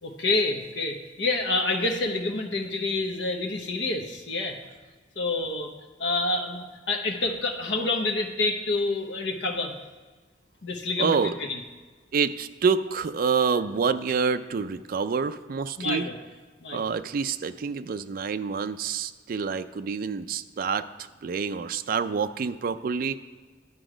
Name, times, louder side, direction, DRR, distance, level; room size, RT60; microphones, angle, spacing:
voice 1, 0.0-4.6 5.2-5.7 6.0-9.7 10.6-11.2 11.5-11.6 15.8-16.2 16.6-16.9, left 2 dB, 70° left, 3 dB, 0.9 m, -28 dB
voice 2, 11.0-11.4 12.1-16.1 16.7-20.9 21.2-23.2, right 5 dB, 50° right, 11 dB, 0.4 m, -27 dB
9.8 x 6.1 x 5.0 m, 1.4 s
head